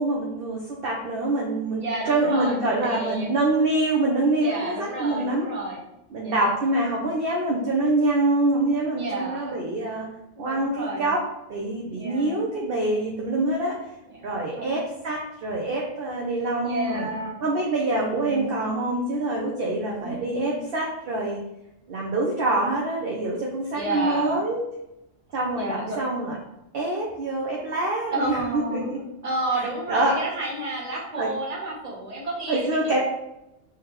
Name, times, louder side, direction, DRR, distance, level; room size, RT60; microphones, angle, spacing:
voice 1, 0.0-5.5 6.1-10.0 10.4-11.2 11.5-13.8 14.2-17.1 17.4-21.4 21.9-24.6 25.3-26.4 26.7-29.0 29.9-30.1 31.2-31.3 32.5-33.0, right 2 dB, 55° right, -2 dB, 0.8 m, -25 dB
voice 2, 1.8-3.3 4.4-5.8 6.2-6.5 9.0-9.6 10.4-11.1 12.0-12.5 14.0-14.8 16.6-17.4 18.1-18.6 20.0-20.6 23.7-24.5 25.5-26.0 28.1-29.0 29.2-33.0, right 2 dB, 35° right, -4 dB, 1.0 m, -31 dB
3.5 x 3.2 x 3.0 m, 0.87 s
omnidirectional pair, 1.3 m